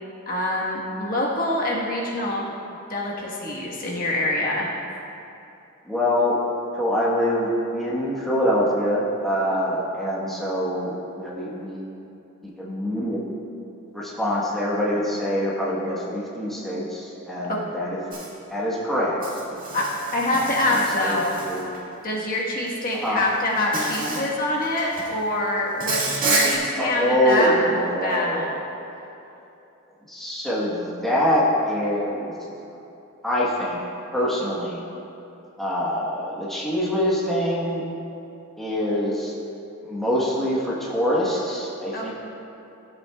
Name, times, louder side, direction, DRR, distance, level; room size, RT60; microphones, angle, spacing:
voice 1, 0.3-2.5 2.9-4.7 17.5-17.6 19.7-21.4 22.0-28.6 41.9-42.1, left 1 dB, 45° left, -4 dB, 1.3 m, -25 dB
voice 2, 5.8-6.4 6.7-11.9 12.4-13.2 13.9-18.0 18.5-19.2 19.5-19.6 21.0-21.2 21.4-21.8 23.0-23.2 26.8-28.5 30.1-32.3 33.2-33.8 34.1-34.8 35.6-37.8 38.6-39.4 39.8-42.1, equal, ahead, -7 dB, 1.2 m, -24 dB
Insect, 18.1-18.3 19.2-21.8 22.9-23.1 23.7-24.3 24.6-25.1 25.8-26.6, right 3 dB, 45° right, 1.7 m, -28 dB
15.0 x 7.6 x 2.3 m, 2.8 s
head